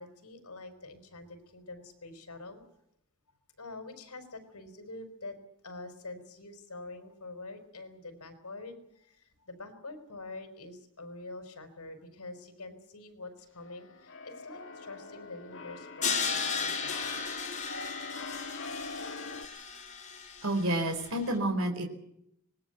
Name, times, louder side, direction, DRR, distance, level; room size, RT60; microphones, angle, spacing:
voice 1, 0.0-2.7 3.6-5.4 5.6-17.3, left 2 dB, 80° left, 9 dB, 4.7 m, -46 dB
Keyboard (musical), 13.6-19.4, left 3 dB, 60° left, 2.2 m, -43 dB
Crash cymbal, 16.0-21.1, left 5 dB, 35° left, 4.3 m, -35 dB
voice 2, 20.4-21.9, right 1 dB, 65° right, 5 dB, 4.4 m, -29 dB
25.0 x 20.5 x 8.0 m, 0.77 s
head